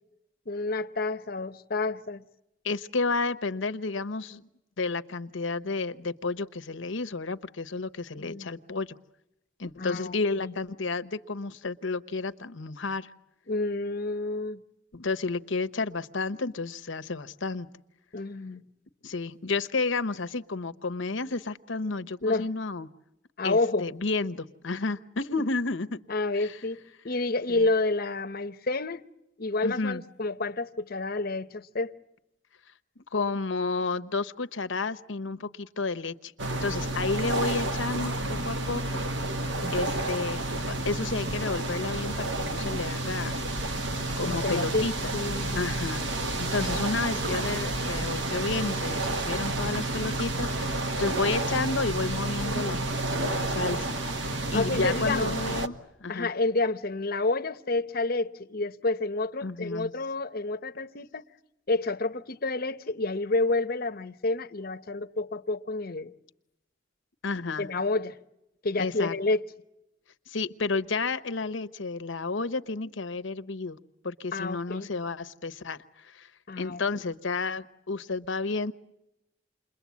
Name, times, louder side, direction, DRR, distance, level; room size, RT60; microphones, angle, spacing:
voice 1, 0.5-2.2 8.2-8.5 9.8-10.5 13.5-14.6 18.1-18.6 22.2-22.5 23.4-23.9 26.1-26.8 27.0-29.0 29.4-31.9 44.2-45.7 54.5-55.3 56.1-61.2 61.7-66.1 67.6-68.2 68.6-69.4 74.3-74.9 76.5-76.8, left 2 dB, 50° left, 0.9 m, -29 dB
voice 2, 2.6-4.4 4.8-8.9 9.6-13.1 14.9-17.7 19.0-22.9 23.4-26.0 26.3-26.6 27.5-27.7 29.6-30.0 33.0-36.3 36.6-39.0 39.7-43.4 44.2-45.1 45.6-56.3 59.4-59.9 67.2-67.7 68.8-69.1 70.3-73.8 74.0-76.3 76.6-78.7, left 3 dB, 75° left, 1.0 m, -31 dB
sound 1, 36.4-55.7, right 2 dB, 65° right, 1.6 m, -30 dB
29.0 x 22.0 x 8.4 m
head